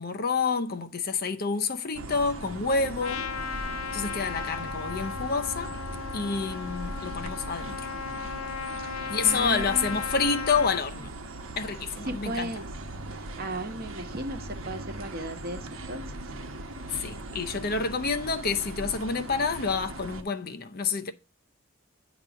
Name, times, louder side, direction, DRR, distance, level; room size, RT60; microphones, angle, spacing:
voice 1, 0.0-3.3 3.9-5.8 6.1-7.9 9.1-11.1 11.6-12.5 16.9-21.1, left 5 dB, 45° left, 0.6 m, -28 dB
sound 1, 1.9-20.2, right 2 dB, 80° right, 1.0 m, -39 dB
voice 2, 2.8-3.2 8.8-10.0 12.1-12.7 13.0-16.3, right 1 dB, 45° right, 1.0 m, -37 dB
Trumpet, 3.0-10.8, left 6 dB, 90° left, 0.5 m, -36 dB
8.9 x 3.0 x 6.1 m
head